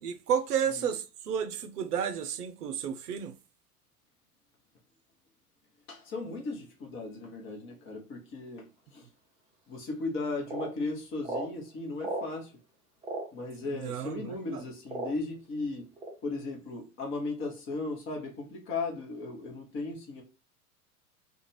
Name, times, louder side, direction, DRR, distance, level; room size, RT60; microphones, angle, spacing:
voice 1, 0.0-3.3 13.7-14.6, right 8 dB, 75° right, 0.5 m, -32 dB
voice 2, 5.9-9.1 9.7-12.5 13.3-15.9 16.2-20.2, left 3 dB, 25° left, 0.9 m, -36 dB
sound 1, 9.7-9.8 10.5-10.7 11.2-11.5 12.0-12.3 13.0-13.3 14.1-14.2 14.9-15.3 16.0-16.1, right 2 dB, 15° right, 0.7 m, -35 dB
2.4 x 2.4 x 3.0 m
figure-of-eight pair, 85°, 47 cm